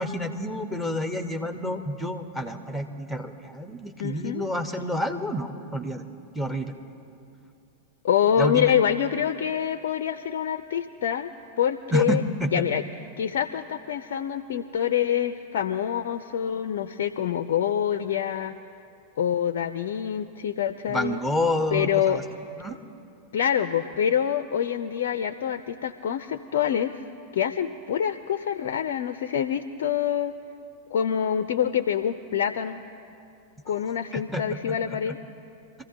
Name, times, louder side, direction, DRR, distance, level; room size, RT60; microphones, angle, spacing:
voice 1, 0.0-6.0 6.3-6.7 8.4-8.7 11.9-12.5 20.9-22.2 22.6-22.8 33.7-33.8 34.1-34.4, equal, ahead, 6 dB, 1.1 m, -29 dB
voice 2, 4.0-4.4 8.0-11.3 11.6-12.2 12.5-12.8 13.2-18.6 19.2-21.2 21.7-22.2 23.3-26.9 27.3-30.3 30.9-32.8 33.7-35.2, left 9 dB, 55° left, 11 dB, 0.4 m, -26 dB
25.0 x 14.5 x 2.8 m, 2.5 s
figure-of-eight pair, 90°, 0 cm